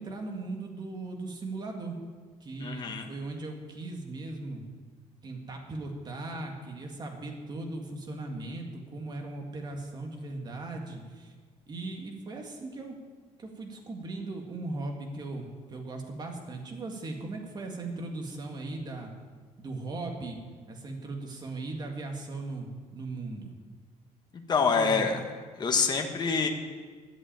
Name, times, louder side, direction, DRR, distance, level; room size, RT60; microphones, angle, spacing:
voice 1, 0.0-2.0 2.4-4.7 5.2-11.3 11.7-13.0 13.4-19.1 19.6-20.4 20.7-23.5 24.8-25.2, right 2 dB, 30° right, 2 dB, 2.0 m, -38 dB
voice 2, 2.6-3.1 24.5-25.2 25.6-26.5, left 5 dB, 35° left, 3 dB, 1.3 m, -26 dB
11.0 x 8.1 x 9.0 m, 1.5 s
cardioid pair, 145°, 13 cm